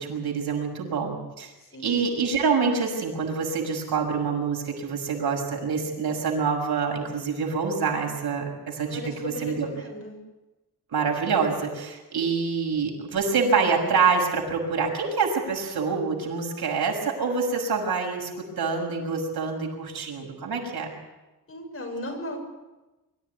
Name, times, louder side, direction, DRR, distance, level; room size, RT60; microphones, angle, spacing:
voice 1, 0.0-1.5 1.8-9.7 10.9-20.9, right 5 dB, 80° right, 1 dB, 6.4 m, -26 dB
voice 2, 1.7-2.1 8.8-10.2 21.5-22.4, left 1 dB, 35° left, 2 dB, 6.6 m, -36 dB
24.5 x 14.5 x 9.5 m, 1.1 s
wide cardioid pair, 135°, 37 cm